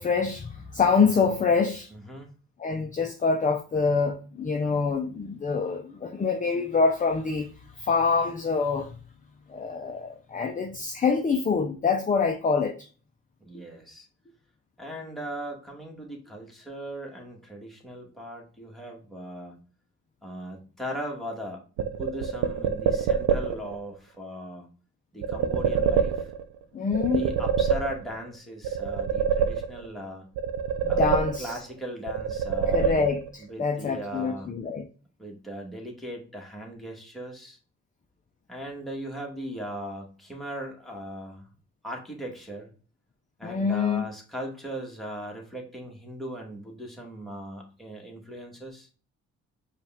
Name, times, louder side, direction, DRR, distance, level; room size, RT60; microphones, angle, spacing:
voice 1, 0.0-1.9 2.6-7.5 7.8-9.0 9.5-12.9 26.7-27.2 30.8-31.6 32.7-34.9 43.4-44.0, left 5 dB, 25° left, 0.6 m, -25 dB
voice 2, 1.9-2.3 7.8-7.9 13.4-14.1 14.8-19.6 20.2-21.6 22.0-24.7 25.1-26.3 27.1-30.3 30.9-33.0 33.4-34.5 35.2-37.6 38.5-41.4 41.8-42.7 43.4-48.9, equal, ahead, 1.6 m, -38 dB
sound 1, 21.8-23.8 25.2-26.6 26.9-28.3 28.6-30.0 30.4-31.7 32.1-33.4, right 7 dB, 90° right, 0.6 m, -26 dB
5.1 x 2.5 x 3.5 m
cardioid pair, 90°, 30 cm